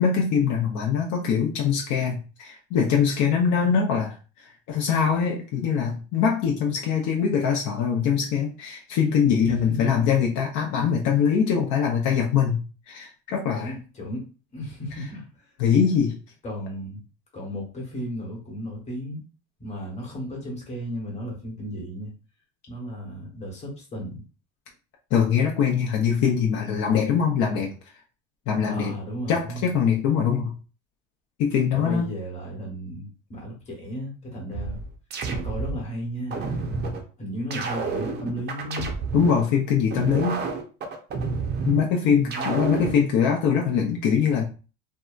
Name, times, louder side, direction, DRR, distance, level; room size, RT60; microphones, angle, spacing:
voice 1, 0.0-13.7 15.6-16.2 25.1-27.7 28.5-28.9 29.3-30.5 31.4-32.1 39.1-40.4 41.7-44.4, left 7 dB, 60° left, 0 dB, 0.6 m, -23 dB
voice 2, 9.4-10.1 13.5-14.2 14.5-15.5 16.4-17.0 17.3-19.2 19.6-22.1 22.7-24.2 28.7-29.7 31.7-34.9 35.3-36.8 37.2-38.9 42.2-42.7, equal, 20° left, -2 dB, 1.0 m, -35 dB
sound 1, 34.5-35.8 36.3-37.0 37.5-39.4 39.9-41.8 42.3-43.0, right 4 dB, 30° right, 0.5 m, -29 dB
2.7 x 2.2 x 2.3 m, 0.35 s
cardioid pair, 125°, 34 cm